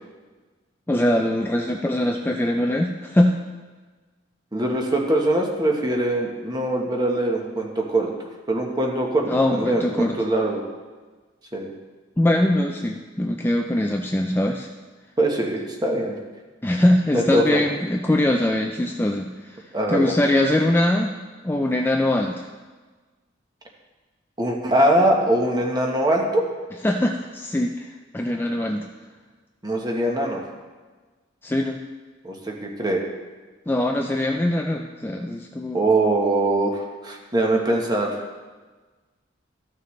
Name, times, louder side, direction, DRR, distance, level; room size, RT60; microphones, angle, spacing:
voice 1, 0.9-3.4 9.3-10.2 12.2-14.7 16.6-19.3 19.9-21.1 21.4-22.4 26.8-27.8 28.1-28.9 31.4-31.8 33.7-35.8, left 1 dB, 10° left, 2 dB, 0.4 m, -22 dB
voice 2, 4.5-8.1 8.5-10.6 11.5-11.7 15.2-16.2 17.1-17.6 19.7-20.1 24.4-26.5 29.6-30.4 32.2-33.0 35.7-38.2, right 1 dB, 20° right, 0 dB, 1.2 m, -22 dB
14.0 x 6.5 x 3.2 m, 1.3 s
head